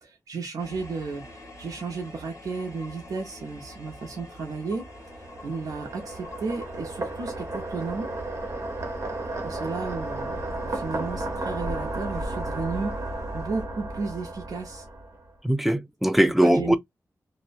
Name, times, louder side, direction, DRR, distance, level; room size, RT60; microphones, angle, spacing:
voice 1, 0.0-4.8 5.4-8.1 9.4-14.9 16.4-16.8, right 4 dB, 90° right, 0.6 m, -33 dB
sound 1, 0.6-13.6, left 1 dB, 60° left, 1.1 m, -47 dB
sound 2, 4.6-15.3, right 2 dB, 50° right, 0.9 m, -33 dB
voice 2, 15.4-16.8, right 1 dB, 5° right, 0.3 m, -21 dB
2.6 x 2.0 x 2.4 m
wide cardioid pair, 105°, 6 cm